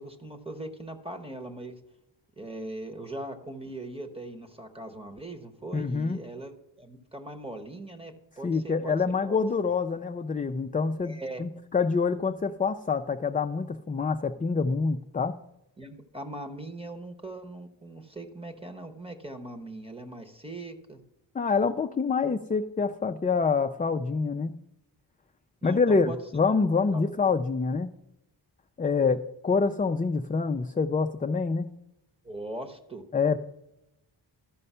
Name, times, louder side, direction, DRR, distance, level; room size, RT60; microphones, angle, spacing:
voice 1, 0.0-1.7 2.4-8.9 9.2-9.7 11.0-11.4 15.8-21.0 25.6-26.2 26.9-27.1 32.2-33.0, right 1 dB, 15° right, 6 dB, 1.0 m, -40 dB
voice 2, 5.7-6.2 8.4-15.3 21.3-24.5 25.6-27.9 28.8-31.7 33.1-33.4, left 4 dB, 20° left, 7 dB, 0.3 m, -26 dB
13.5 x 5.4 x 5.5 m, 0.87 s
wide cardioid pair, 115°, 44 cm